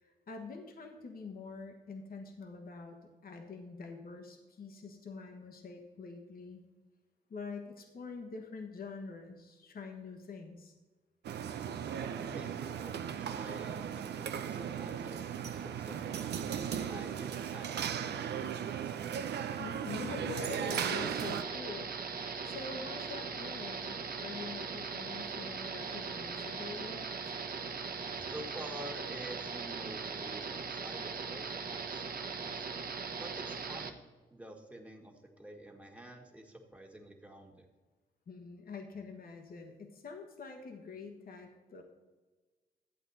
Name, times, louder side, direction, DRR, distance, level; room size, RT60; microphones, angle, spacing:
voice 1, 0.0-6.6 7.3-10.7 19.5-21.9 22.4-27.1 38.3-41.8, left 4 dB, 60° left, 4 dB, 1.3 m, -45 dB
sound 1, 11.2-21.4, right 8 dB, 80° right, 0.6 m, -37 dB
voice 2, 12.3-16.4 16.9-19.3 28.3-32.7 33.2-34.0 34.3-37.7, right 1 dB, 10° right, 2 dB, 1.6 m, -49 dB
sound 2, 20.7-33.9, right 5 dB, 60° right, 0.9 m, -40 dB
12.0 x 8.0 x 4.1 m, 1.3 s
cardioid pair, 75°, 17 cm